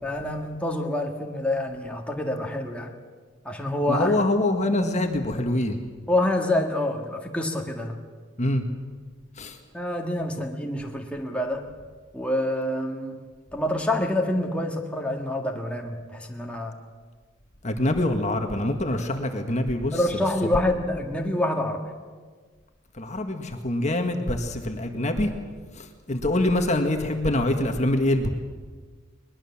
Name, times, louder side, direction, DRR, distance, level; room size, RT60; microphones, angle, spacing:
voice 1, 0.0-3.0 3.4-4.2 6.1-8.0 9.7-11.7 12.1-13.2 13.5-16.8 19.9-21.9, left 1 dB, 5° left, 1 dB, 1.8 m, -27 dB
voice 2, 3.9-5.8 8.4-8.6 9.4-9.6 17.6-20.0 23.0-25.3 25.8-28.3, left 1 dB, 35° left, 5 dB, 1.7 m, -25 dB
21.5 x 21.5 x 7.3 m, 1.5 s
head